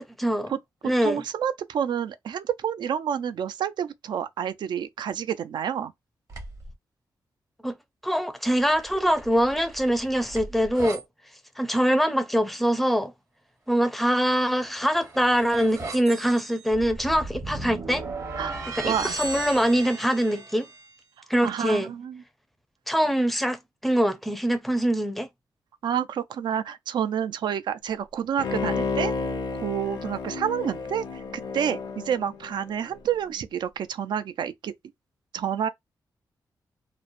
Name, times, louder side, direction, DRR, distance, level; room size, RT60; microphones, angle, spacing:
voice 1, 0.2-0.5 0.8-1.2 7.6-7.7 8.0-11.0 11.6-13.1 13.7-18.0 18.7-20.7 21.3-21.9 22.9-25.3, equal, ahead, 0.5 m, -23 dB
voice 2, 1.0-5.9 18.4-18.6 18.8-19.2 21.4-22.2 25.8-29.1 29.5-34.7 35.3-35.7, right 8 dB, 80° right, 0.4 m, -29 dB
sound 1, 6.3-6.7 8.6-11.0 14.5-20.9, right 3 dB, 45° right, 1.0 m, -37 dB
Bowed string instrument, 28.4-33.0 33.4-33.5, left 4 dB, 85° left, 0.6 m, -31 dB
3.0 x 2.0 x 2.4 m
wide cardioid pair, 120°, 8 cm